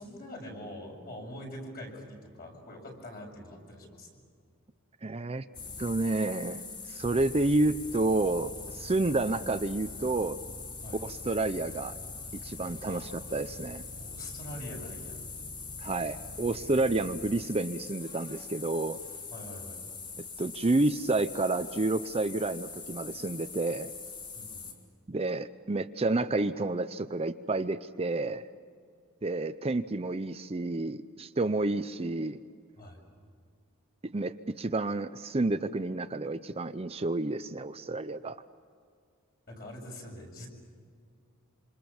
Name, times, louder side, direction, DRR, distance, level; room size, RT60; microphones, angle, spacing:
voice 1, 0.0-4.1 10.8-11.0 12.9-13.1 14.0-15.3 19.3-19.8 24.3-24.6 32.8-33.0 39.5-40.5, left 1 dB, 45° left, 0 dB, 7.2 m, -44 dB
voice 2, 5.0-5.4 5.8-6.6 6.9-10.4 10.9-12.0 12.4-13.8 15.8-19.0 20.4-23.9 25.1-28.4 29.2-32.4 34.1-38.4, right 2 dB, 25° right, 10 dB, 0.6 m, -30 dB
sound 1, 5.5-24.7, left 4 dB, 25° left, 5.0 m, -42 dB
27.0 x 27.0 x 7.1 m, 2.2 s
head